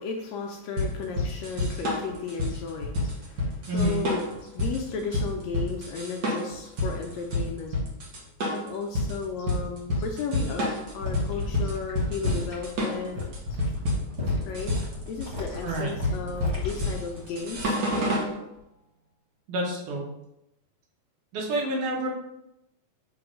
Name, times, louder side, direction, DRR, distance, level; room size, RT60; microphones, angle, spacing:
voice 1, 0.0-7.8 8.4-13.2 13.5-13.6 14.3-14.7 15.1-18.2, left 5 dB, 80° left, 1 dB, 1.6 m, -35 dB
sound 1, 0.8-18.3, left 1 dB, 60° right, 1.1 m, -29 dB
voice 2, 3.7-4.0 15.6-15.9 19.5-20.1 21.3-22.1, right 1 dB, 85° right, -1 dB, 2.8 m, -28 dB
sound 2, 11.0-17.9 18.2-18.6, left 3 dB, 25° right, 1.6 m, -36 dB
6.0 x 3.1 x 5.0 m, 0.87 s
omnidirectional pair, 3.5 m